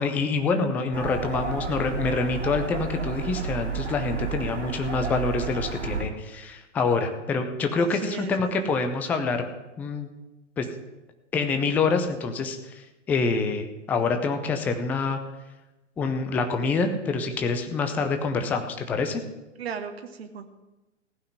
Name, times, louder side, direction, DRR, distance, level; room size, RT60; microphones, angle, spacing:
voice 1, 0.0-9.4 9.8-10.1 10.6-10.7 11.3-15.2 16.0-19.2, left 4 dB, 5° left, 7 dB, 0.4 m, -26 dB
sound 1, 0.9-6.0, right 5 dB, 75° right, 3.1 m, -31 dB
voice 2, 7.7-8.8 19.6-20.5, right 6 dB, 55° right, 6 dB, 1.2 m, -37 dB
15.5 x 5.6 x 9.7 m, 1.0 s
figure-of-eight pair, 110°, 37 cm